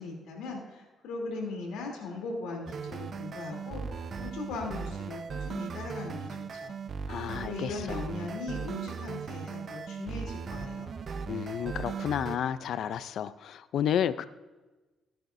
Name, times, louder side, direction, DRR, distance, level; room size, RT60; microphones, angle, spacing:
voice 1, 0.0-6.3 6.6-6.8 7.4-10.9, left 3 dB, 90° left, 3.1 m, -39 dB
sound 1, 2.7-12.4, right 5 dB, 50° right, 0.6 m, -38 dB
voice 2, 7.1-8.0 11.3-14.3, left 9 dB, 70° left, 0.4 m, -31 dB
16.5 x 10.5 x 2.6 m
cardioid pair, 90°, 0 cm